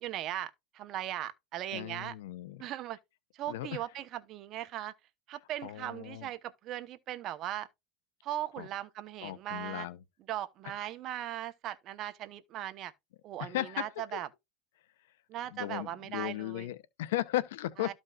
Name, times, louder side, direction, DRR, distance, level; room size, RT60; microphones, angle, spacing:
voice 1, 0.0-2.1 2.6-3.0 3.4-4.9 5.3-7.7 8.2-9.9 10.3-12.9 13.2-14.3 15.3-16.7 17.8-17.9, right 12 dB, 40° right, 0.9 m, -38 dB
voice 2, 1.7-2.6 3.5-3.8 5.6-6.3 8.6-8.7 9.2-10.0 13.4-13.9 14.1-14.2 15.5-17.9, left 14 dB, 80° left, 0.8 m, -36 dB
13.5 x 5.2 x 2.4 m
supercardioid pair, 145°, 0 cm